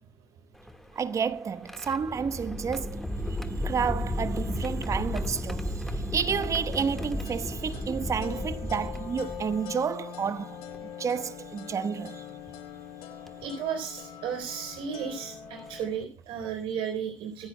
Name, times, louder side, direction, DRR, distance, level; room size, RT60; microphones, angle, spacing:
sound 1, 0.5-9.8 10.7-10.8 12.3-12.5 13.3-13.5 15.1-15.2 15.6-15.8, left 1 dB, 5° left, 1.6 m, -34 dB
voice 1, 1.0-3.1 3.6-10.6 11.0-12.2, right 6 dB, 35° right, 1.0 m, -30 dB
sound 2, 6.3-15.9, left 8 dB, 70° left, 4.3 m, -43 dB
voice 2, 13.4-17.5, right 7 dB, 70° right, 3.9 m, -34 dB
25.5 x 9.9 x 2.2 m
cardioid pair, 120°, 9 cm